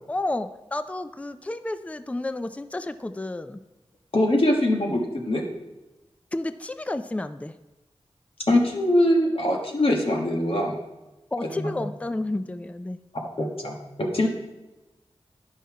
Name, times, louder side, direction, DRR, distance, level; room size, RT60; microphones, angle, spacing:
voice 1, 0.1-3.6 6.3-7.6 11.3-13.0, left 2 dB, 15° left, 11 dB, 0.4 m, -31 dB
voice 2, 4.1-5.4 8.5-10.8 11.5-11.7 13.4-14.3, left 1 dB, 65° left, -1 dB, 1.4 m, -22 dB
10.0 x 5.6 x 4.7 m, 1.0 s
wide cardioid pair, 65°, 10 cm